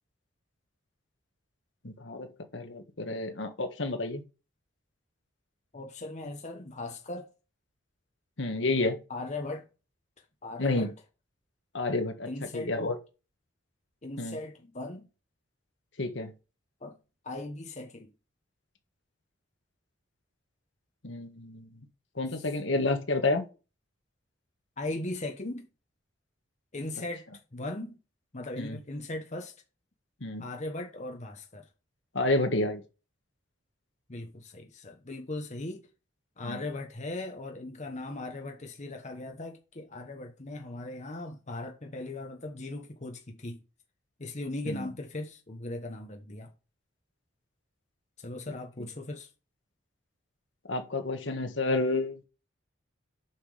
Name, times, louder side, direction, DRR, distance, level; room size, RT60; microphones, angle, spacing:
voice 1, 1.8-4.2 8.4-9.0 10.6-10.9 11.7-12.3 12.5-12.9 14.2-14.4 16.0-16.3 21.0-21.7 22.2-23.4 28.6-28.8 30.2-30.5 32.1-32.8 36.4-36.6 44.7-44.9 50.7-52.2, left 2 dB, 65° left, 1.5 m, -30 dB
voice 2, 5.7-7.3 9.1-9.7 10.4-10.9 12.2-12.7 14.0-15.1 16.8-17.0 17.2-18.1 24.8-25.7 26.7-27.3 27.5-28.0 28.3-29.5 30.4-31.7 34.1-35.9 36.4-43.6 44.2-46.5 48.2-49.3, left 2 dB, 40° left, 1.1 m, -38 dB
7.3 x 5.9 x 5.0 m
head